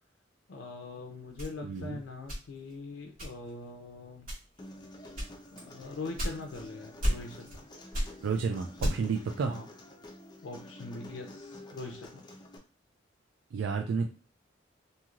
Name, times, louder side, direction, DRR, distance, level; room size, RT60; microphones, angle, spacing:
voice 1, 0.5-4.3 5.5-7.6 9.5-9.7 10.4-12.3, left 3 dB, 85° left, 2 dB, 0.4 m, -42 dB
sound 1, 1.4-2.8 3.2-3.6 4.2-4.7 5.2-6.7 7.0-7.6 7.9-9.2, equal, 50° right, 1.6 m, -33 dB
voice 2, 1.6-2.0 8.2-9.5 13.5-14.1, right 5 dB, 70° right, 3 dB, 0.3 m, -31 dB
Human voice, 4.6-12.6, left 1 dB, 25° left, 0.5 m, -49 dB
3.0 x 2.7 x 2.4 m, 0.34 s
head